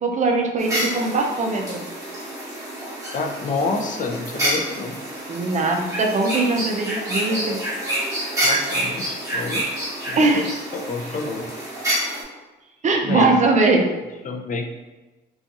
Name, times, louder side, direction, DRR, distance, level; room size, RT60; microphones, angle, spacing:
voice 1, 0.0-1.8 5.3-7.6 10.2-10.5 12.8-13.9, right 3 dB, 40° right, 2 dB, 0.5 m, -20 dB
sound 1, 0.6-12.2, right 1 dB, 15° right, 0.9 m, -28 dB
voice 2, 3.1-5.0 8.4-9.6 10.1-10.4 10.7-11.5 13.0-13.4 14.2-14.7, left 3 dB, 40° left, 3 dB, 0.4 m, -28 dB
2.6 x 2.3 x 2.6 m, 1.2 s
cardioid pair, 90°, 20 cm